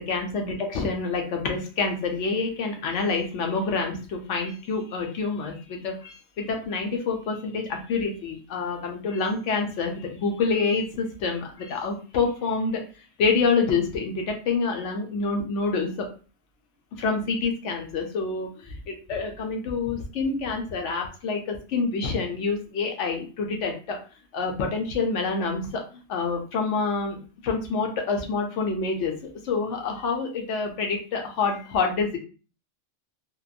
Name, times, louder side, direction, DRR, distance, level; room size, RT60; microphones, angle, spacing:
voice 1, 0.1-12.8 13.2-16.1 17.0-24.0 24.3-25.8 26.1-29.1 29.4-32.2, left 4 dB, 70° left, 2 dB, 0.9 m, -27 dB
2.8 x 2.2 x 2.4 m, 0.37 s
omnidirectional pair, 1.4 m